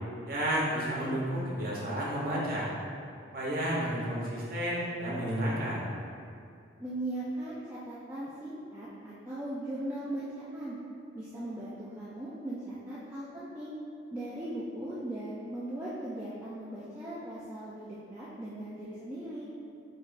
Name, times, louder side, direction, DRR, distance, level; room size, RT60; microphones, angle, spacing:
voice 1, 0.2-2.7 3.3-5.8, right 1 dB, 50° right, -6 dB, 1.0 m, -31 dB
voice 2, 6.8-10.2 10.5-10.8 11.1-13.7 14.1-19.5, right 1 dB, 10° right, -10 dB, 0.4 m, -38 dB
4.8 x 4.3 x 2.6 m, 2.4 s
head